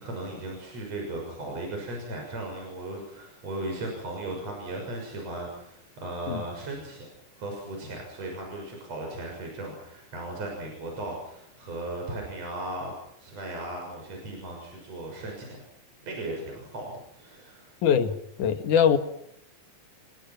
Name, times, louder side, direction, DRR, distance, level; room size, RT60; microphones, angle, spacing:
voice 1, 0.0-7.1 7.4-12.9 13.2-15.5 16.0-16.8 17.1-17.7, right 2 dB, 50° right, 1 dB, 7.5 m, -36 dB
voice 2, 17.8-19.0, left 8 dB, 70° left, 8 dB, 3.2 m, -22 dB
28.5 x 23.5 x 6.0 m, 0.73 s
omnidirectional pair, 3.8 m